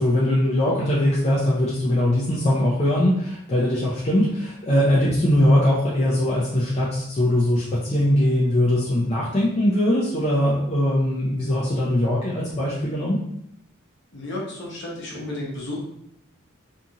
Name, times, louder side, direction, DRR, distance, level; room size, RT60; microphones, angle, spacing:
voice 1, 0.0-13.2, left 1 dB, 30° left, -6 dB, 0.4 m, -21 dB
voice 2, 14.1-15.8, left 1 dB, 55° left, -4 dB, 0.8 m, -32 dB
2.6 x 2.4 x 2.8 m, 0.76 s
head